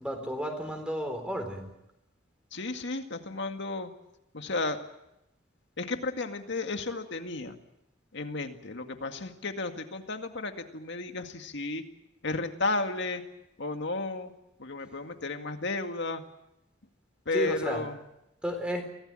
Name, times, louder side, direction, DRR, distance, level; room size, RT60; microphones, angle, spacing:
voice 1, 0.0-1.7 17.3-17.8 18.4-18.8, right 1 dB, 5° right, 5 dB, 4.0 m, -32 dB
voice 2, 2.5-3.9 4.3-4.8 5.8-7.6 8.1-11.8 12.2-13.2 13.6-14.3 14.6-16.2 17.3-18.0, left 3 dB, 60° left, 6 dB, 2.1 m, -33 dB
24.5 x 17.5 x 9.0 m, 0.87 s
head